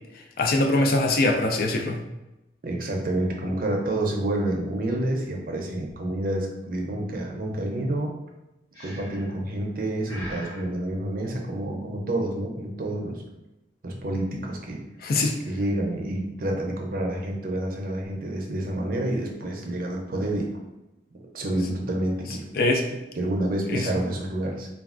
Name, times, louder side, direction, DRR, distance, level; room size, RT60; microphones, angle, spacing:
voice 1, 0.1-2.0 15.0-15.4 22.5-23.0 23.7-23.9, left 2 dB, 50° left, 3 dB, 0.4 m, -23 dB
voice 2, 2.6-8.2 8.8-13.2 13.8-14.8 15.5-20.5 21.3-22.5 23.2-24.7, right 1 dB, 50° right, 0 dB, 0.5 m, -28 dB
Breathing, 8.7-9.4 10.0-10.6, equal, 25° left, 1.5 m, -40 dB
3.2 x 2.3 x 2.4 m, 0.96 s
head